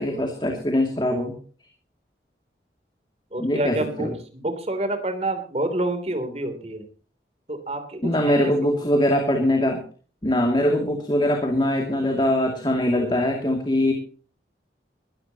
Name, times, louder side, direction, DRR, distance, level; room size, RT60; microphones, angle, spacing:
voice 1, 0.0-1.3 3.4-4.1 8.0-9.8 10.2-13.9, left 1 dB, 25° left, 3 dB, 2.5 m, -22 dB
voice 2, 3.3-4.1 4.3-6.9 7.5-8.8, right 1 dB, 35° right, 8 dB, 3.1 m, -28 dB
21.0 x 14.0 x 2.9 m, 0.40 s
head